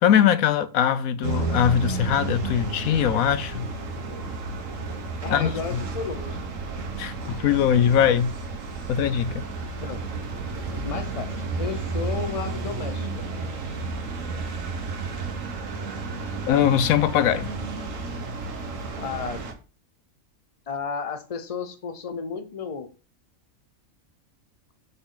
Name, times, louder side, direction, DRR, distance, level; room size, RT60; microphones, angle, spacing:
voice 1, 0.0-3.7 5.3-5.8 7.0-8.3 8.9-9.4 16.5-17.5, left 9 dB, 80° left, 1.1 m, -21 dB
sound 1, 1.2-19.5, right 3 dB, 70° right, 1.5 m, -32 dB
voice 2, 5.2-6.4 9.8-10.0 10.8-13.2 19.0-19.5 20.7-22.9, left 5 dB, 30° left, 0.8 m, -33 dB
6.1 x 5.3 x 4.0 m
omnidirectional pair, 1.4 m